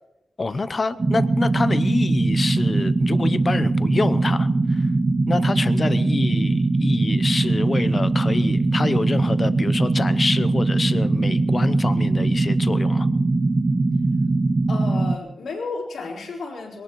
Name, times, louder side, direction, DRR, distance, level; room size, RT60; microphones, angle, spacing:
voice 1, 0.4-4.9 5.3-13.1, left 3 dB, 30° left, 13 dB, 0.7 m, -26 dB
sound 1, 1.0-15.2, right 2 dB, 30° right, 0.7 m, -21 dB
voice 2, 14.7-16.8, left 4 dB, 75° left, -2 dB, 4.2 m, -32 dB
22.5 x 18.0 x 3.1 m, 0.94 s
wide cardioid pair, 155°, 0 cm